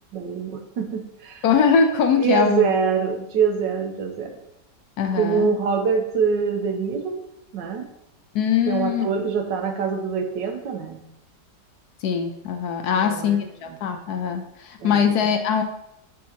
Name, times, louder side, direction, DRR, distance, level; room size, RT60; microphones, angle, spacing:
voice 1, 0.1-1.4 2.2-4.3 5.1-7.2 7.5-7.9 8.7-11.0 12.9-13.4 14.8-15.0, right 6 dB, 90° right, 4 dB, 1.5 m, -24 dB
voice 2, 1.4-2.7 5.0-5.5 8.3-9.1 12.0-15.6, left 7 dB, 70° left, 6 dB, 1.1 m, -22 dB
10.5 x 3.8 x 2.9 m, 0.79 s
omnidirectional pair, 1.9 m